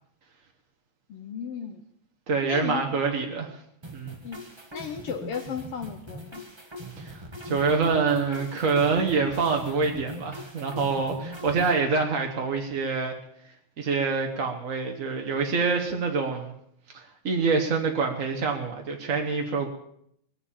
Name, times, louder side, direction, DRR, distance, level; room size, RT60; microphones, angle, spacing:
voice 1, 1.1-1.8 2.5-2.8 4.2-4.4 4.7-6.4, left 7 dB, 65° left, 7 dB, 1.5 m, -35 dB
voice 2, 2.3-3.6 3.9-4.2 7.0-13.2 13.8-16.5 16.9-19.7, right 4 dB, 50° right, 3 dB, 0.9 m, -26 dB
sound 1, 3.8-11.8, right 1 dB, 30° right, 0.4 m, -41 dB
21.0 x 7.6 x 8.7 m, 0.72 s
omnidirectional pair, 3.5 m